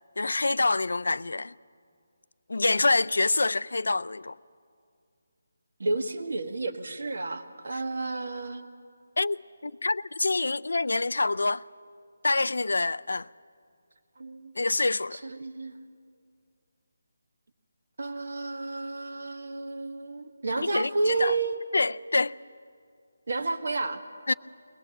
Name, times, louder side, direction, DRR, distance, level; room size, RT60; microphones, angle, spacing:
voice 1, 0.2-1.5 2.5-4.3 9.2-11.6 12.2-13.3 14.6-15.2 20.6-21.3 21.7-22.4 24.3-24.4, left 3 dB, 80° left, 0.4 m, -26 dB
voice 2, 5.8-8.7 14.2-14.5 15.1-15.8 18.0-21.5 23.3-24.0, right 3 dB, 55° right, 1.6 m, -31 dB
22.0 x 18.5 x 7.7 m
hypercardioid pair, 175°, 0 cm